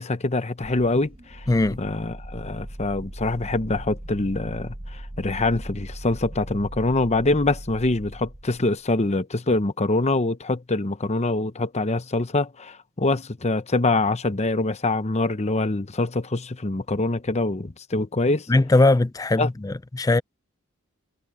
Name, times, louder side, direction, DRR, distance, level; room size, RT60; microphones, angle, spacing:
voice 1, 0.0-1.5 1.8-18.5 19.4-19.5, left 2 dB, 30° left, 0.9 m, -24 dB
sound 1, 0.6-8.8, right 1 dB, 25° right, 1.0 m, -39 dB
voice 2, 1.5-1.8 18.5-20.2, left 2 dB, 15° left, 0.4 m, -20 dB
head